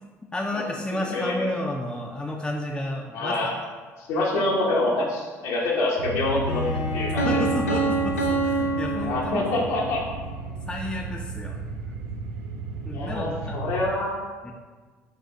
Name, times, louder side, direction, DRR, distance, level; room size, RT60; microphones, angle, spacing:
voice 1, 0.3-3.5 7.2-9.7 10.7-11.6 11.9-12.0 12.8-13.6 14.4-14.5, left 1 dB, 10° left, -1 dB, 0.5 m, -31 dB
voice 2, 1.1-1.5 3.1-3.5 4.0-7.3 9.0-10.0 12.9-14.2, left 2 dB, 70° left, -5 dB, 0.9 m, -26 dB
sound 1, 6.0-13.9, right 2 dB, 75° right, 0.4 m, -33 dB
Bowed string instrument, 6.4-9.4, left 2 dB, 35° right, 0.9 m, -35 dB
Piano, 7.2-10.0, right 3 dB, 85° left, 0.4 m, -26 dB
6.0 x 2.4 x 2.7 m, 1.4 s
figure-of-eight pair, 55°, 8 cm